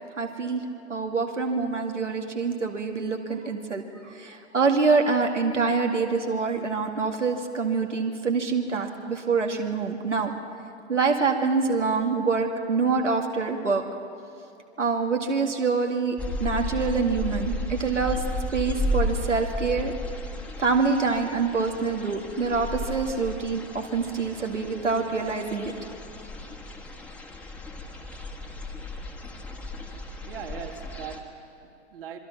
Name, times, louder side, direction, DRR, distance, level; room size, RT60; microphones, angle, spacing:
voice 1, 0.2-0.6 0.9-3.8 4.1-10.3 10.9-13.8 14.8-18.2 18.5-19.9 20.6-25.7, right 4 dB, 75° right, 3 dB, 2.3 m, -25 dB
sound 1, 16.2-31.2, left 1 dB, 5° left, 1.5 m, -34 dB
voice 2, 30.3-32.2, right 7 dB, 50° right, 4 dB, 2.0 m, -40 dB
27.0 x 22.5 x 5.9 m, 2.5 s
figure-of-eight pair, 110°, 36 cm